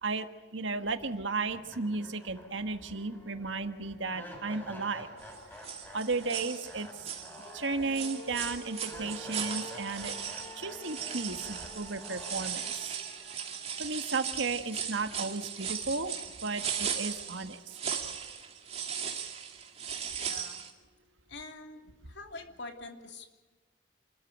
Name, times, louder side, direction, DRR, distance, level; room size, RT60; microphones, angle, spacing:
voice 1, 0.5-5.1 5.9-7.1 7.5-10.1 10.6-13.0 13.8-16.1 16.4-17.8, right 3 dB, 85° right, 8 dB, 1.6 m, -34 dB
sound 1, 1.0-1.1 1.5-14.5, equal, 10° left, 6.9 m, -48 dB
sound 2, 5.2-5.4 5.6-7.7 7.9-20.7, right 7 dB, 35° right, 2.4 m, -38 dB
voice 2, 20.2-20.6 21.3-21.8 22.1-23.3, left 3 dB, 65° left, 4 dB, 2.9 m, -44 dB
28.0 x 13.5 x 9.1 m, 1.3 s
head